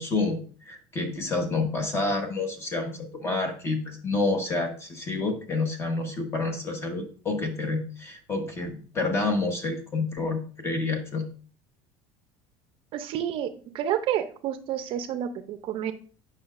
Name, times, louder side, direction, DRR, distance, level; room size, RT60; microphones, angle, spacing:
voice 1, 0.0-11.2, left 3 dB, 20° left, 5 dB, 1.2 m, -29 dB
voice 2, 12.9-15.9, right 10 dB, 50° right, 10 dB, 0.6 m, -30 dB
8.7 x 5.5 x 2.5 m, 0.40 s
cardioid pair, 145°, 12 cm